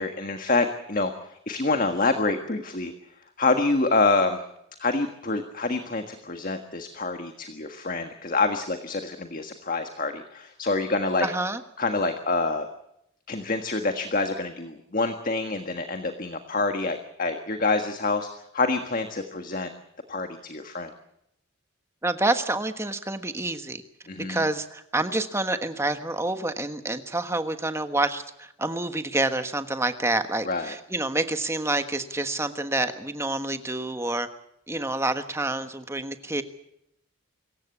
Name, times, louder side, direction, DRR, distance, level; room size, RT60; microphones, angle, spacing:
voice 1, 0.0-2.9 3.4-4.4 4.8-11.3 11.8-12.7 13.3-19.7 20.1-20.9 24.1-24.4 30.4-30.7, left 3 dB, 40° left, 6 dB, 1.6 m, -27 dB
voice 2, 11.2-11.6 22.0-23.8 24.3-34.3 34.7-36.4, right 2 dB, 15° right, 8 dB, 1.3 m, -28 dB
25.0 x 15.0 x 8.4 m, 0.78 s
head